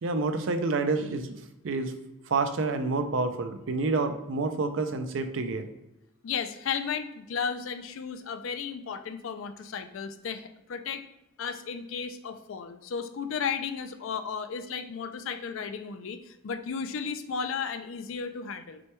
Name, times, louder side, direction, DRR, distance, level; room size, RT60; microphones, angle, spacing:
voice 1, 0.0-1.4 1.6-1.9 2.3-5.7, right 3 dB, 65° right, 8 dB, 0.5 m, -28 dB
voice 2, 6.2-11.0 11.4-18.8, left 6 dB, 70° left, 8 dB, 0.4 m, -34 dB
6.0 x 2.2 x 3.0 m, 0.91 s
head